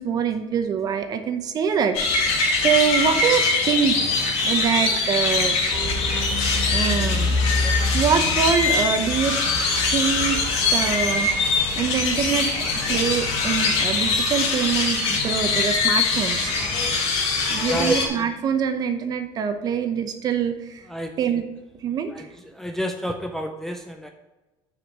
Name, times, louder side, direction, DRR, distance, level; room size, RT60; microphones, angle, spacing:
voice 1, 0.0-2.3 2.6-4.0 4.4-5.6 6.7-7.4 7.9-9.4 9.9-10.4 10.7-11.3 11.8-12.5 12.9-16.5 17.5-20.8 21.2-21.4 21.8-22.3, right 7 dB, 35° right, 8 dB, 0.7 m, -24 dB
sound 1, 1.9-18.1, left 3 dB, 60° left, 1.8 m, -22 dB
voice 2, 22.5-24.1, right 1 dB, 5° left, 3 dB, 0.4 m, -27 dB
6.2 x 5.0 x 5.9 m, 1.1 s
cardioid pair, 150°, 11 cm